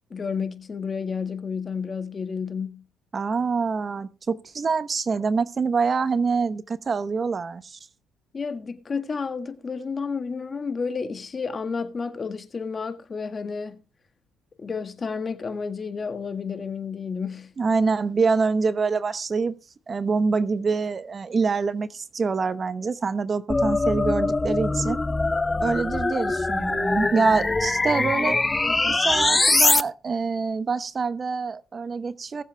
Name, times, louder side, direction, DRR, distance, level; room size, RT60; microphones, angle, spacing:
voice 1, 0.1-2.8 8.3-13.8 14.6-17.5 28.7-29.0, left 5 dB, 35° left, 1.7 m, -31 dB
voice 2, 3.1-7.8 17.6-19.5 19.9-25.0 25.6-28.4 28.9-32.4, right 4 dB, 35° right, 0.9 m, -25 dB
sound 1, 23.5-29.8, left 3 dB, 20° left, 0.7 m, -23 dB
20.5 x 7.4 x 3.3 m
cardioid pair, 85°, 0 cm